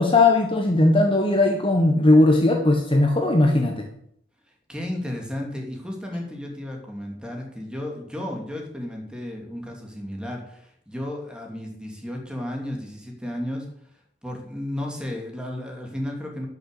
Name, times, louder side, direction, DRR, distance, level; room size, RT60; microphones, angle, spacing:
voice 1, 0.0-3.9, left 2 dB, 25° left, 3 dB, 1.2 m, -18 dB
voice 2, 4.7-13.7 14.2-16.5, left 1 dB, 5° right, 0 dB, 2.7 m, -33 dB
10.5 x 6.7 x 8.4 m, 0.71 s
head